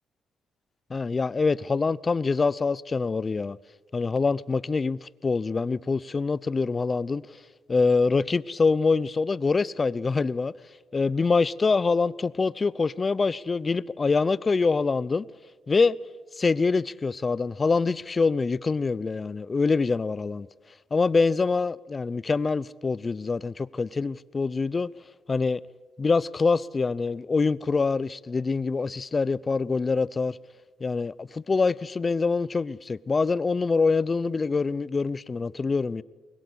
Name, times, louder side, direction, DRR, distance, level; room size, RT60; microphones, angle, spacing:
voice 1, 0.9-3.6 3.9-7.2 7.7-10.5 10.9-15.3 15.7-16.0 16.4-20.5 20.9-24.9 25.3-25.6 26.0-30.4 30.8-36.0, left 4 dB, 30° left, 0.6 m, -25 dB
23.5 x 21.5 x 8.2 m
cardioid pair, 90°, 0 cm